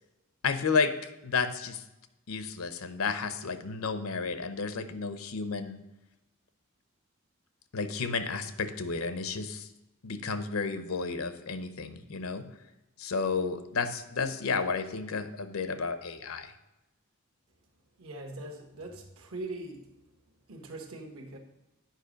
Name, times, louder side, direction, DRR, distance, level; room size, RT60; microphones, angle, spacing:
voice 1, 0.4-0.9 1.2-1.8 2.3-5.8 7.7-9.7 10.0-12.5 13.0-16.5, left 4 dB, 80° left, 10 dB, 0.7 m, -32 dB
voice 2, 18.0-19.9 20.5-21.4, right 2 dB, 80° right, 4 dB, 1.3 m, -41 dB
9.2 x 5.2 x 5.1 m, 0.96 s
head